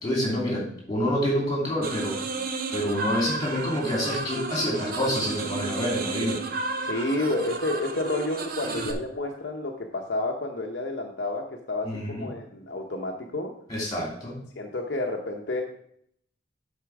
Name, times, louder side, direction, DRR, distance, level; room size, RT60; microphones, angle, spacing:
voice 1, 0.0-2.2 2.7-6.4 11.8-12.3 13.7-14.4, equal, 20° left, -2 dB, 2.9 m, -27 dB
sound 1, 1.8-8.9, right 3 dB, 45° right, 0.7 m, -32 dB
voice 2, 6.8-13.5 14.6-15.6, left 2 dB, 60° left, 0 dB, 0.8 m, -30 dB
8.1 x 4.4 x 5.9 m, 0.68 s
head